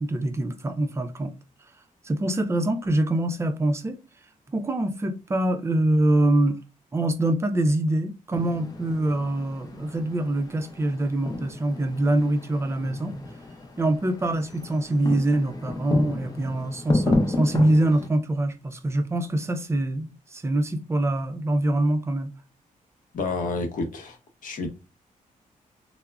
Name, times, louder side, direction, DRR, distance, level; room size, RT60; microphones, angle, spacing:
voice 1, 0.0-1.4 2.0-4.0 4.5-6.6 6.9-13.3 13.8-22.3, right 1 dB, 20° right, 0.4 m, -24 dB
sound 1, 8.3-18.1, left 2 dB, 30° left, 0.5 m, -31 dB
voice 2, 23.1-24.2 24.4-24.7, left 3 dB, 70° left, 0.7 m, -29 dB
3.5 x 2.0 x 2.2 m
wide cardioid pair, 125°, 14 cm